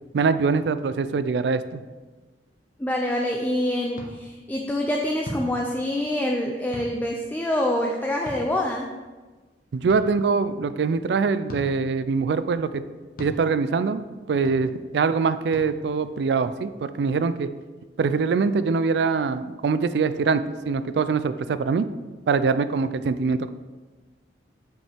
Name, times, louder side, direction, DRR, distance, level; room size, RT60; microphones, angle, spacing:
voice 1, 0.1-1.8 9.7-12.8 13.2-17.5 18.0-21.8 22.3-23.5, right 5 dB, 70° right, 13 dB, 0.3 m, -23 dB
voice 2, 2.8-8.9, left 1 dB, 10° left, 0 dB, 0.4 m, -26 dB
sound 1, 3.9-4.1 5.2-5.5 6.7-6.9 8.3-8.4 9.9-10.0 11.5-11.7 13.2-13.3 14.4-14.6 15.5-15.7, left 1 dB, 55° left, 1.0 m, -36 dB
7.3 x 5.4 x 3.4 m, 1.3 s
head